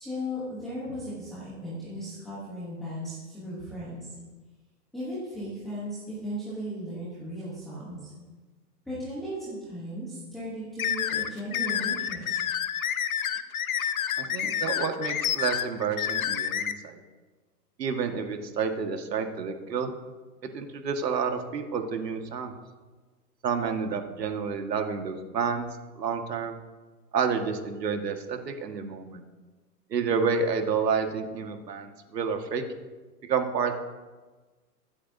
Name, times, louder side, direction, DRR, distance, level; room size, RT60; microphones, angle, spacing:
voice 1, 0.0-4.1 4.9-8.1 8.8-12.4, equal, ahead, -11 dB, 1.0 m, -36 dB
sound 1, 10.8-16.7, left 9 dB, 60° left, 0.8 m, -29 dB
voice 2, 14.2-17.0 17.8-20.0 20.5-22.5 23.4-25.7 26.0-26.6 27.1-29.2 29.9-32.6 33.3-33.7, right 5 dB, 75° right, 5 dB, 1.8 m, -29 dB
23.5 x 8.2 x 2.7 m, 1.3 s
hypercardioid pair, 170°, 49 cm